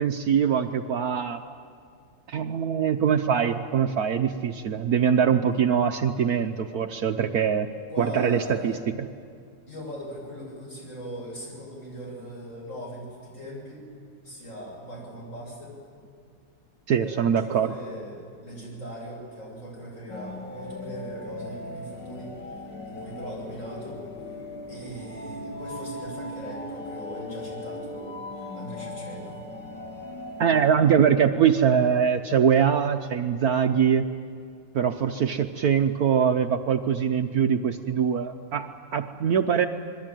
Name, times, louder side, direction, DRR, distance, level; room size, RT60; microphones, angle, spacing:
voice 1, 0.0-1.4 2.3-7.7 8.0-9.1 16.9-17.7 30.4-34.1 34.7-39.7, right 7 dB, 60° right, 6 dB, 1.2 m, -23 dB
voice 2, 7.9-8.8 9.7-13.9 14.2-15.8 16.9-22.3 22.8-24.0 24.7-29.4, equal, 45° left, -2 dB, 8.2 m, -40 dB
sound 1, 20.1-30.8, left 1 dB, 70° left, 2.8 m, -38 dB
26.5 x 22.0 x 9.1 m, 2.2 s
omnidirectional pair, 1.9 m